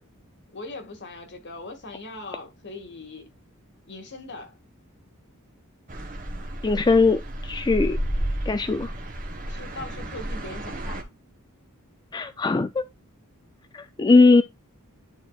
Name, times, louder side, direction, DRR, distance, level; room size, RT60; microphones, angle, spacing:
voice 1, 0.5-3.3 3.9-4.5 9.5-11.1, left 2 dB, 55° left, 1.9 m, -40 dB
sound 1, 5.9-11.0, right 1 dB, 40° right, 1.5 m, -32 dB
voice 2, 6.6-8.0 8.5-8.9 12.1-12.9 13.7-14.4, left 3 dB, 20° left, 0.3 m, -20 dB
11.5 x 4.2 x 2.4 m
head